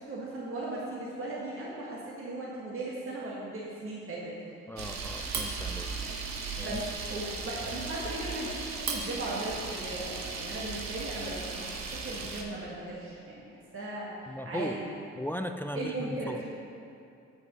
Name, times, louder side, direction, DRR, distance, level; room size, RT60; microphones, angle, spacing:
voice 1, 0.0-4.3 6.6-14.1 14.4-15.0 15.7-16.4, right 2 dB, 45° right, -5 dB, 1.6 m, -37 dB
voice 2, 4.7-5.9 6.6-6.8 14.3-14.8 15.2-16.4, equal, 5° left, 6 dB, 0.3 m, -37 dB
Camera, 4.8-12.4, right 4 dB, 65° right, 1.1 m, -36 dB
7.7 x 6.0 x 5.3 m, 2.6 s
cardioid pair, 90°, 30 cm